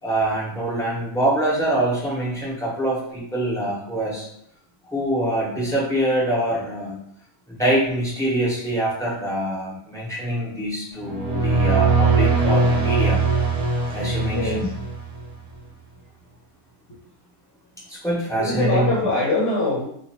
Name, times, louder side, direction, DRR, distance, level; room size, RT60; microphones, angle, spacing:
voice 1, 0.0-4.2 4.9-6.9 7.5-13.2 13.9-14.7 17.9-19.1, right 1 dB, ahead, -7 dB, 1.2 m, -24 dB
sound 1, 11.0-15.3, right 3 dB, 65° right, 0.9 m, -21 dB
voice 2, 14.1-14.7 18.3-19.9, left 2 dB, 55° left, -4 dB, 1.2 m, -23 dB
2.8 x 2.6 x 4.3 m, 0.70 s
omnidirectional pair, 1.6 m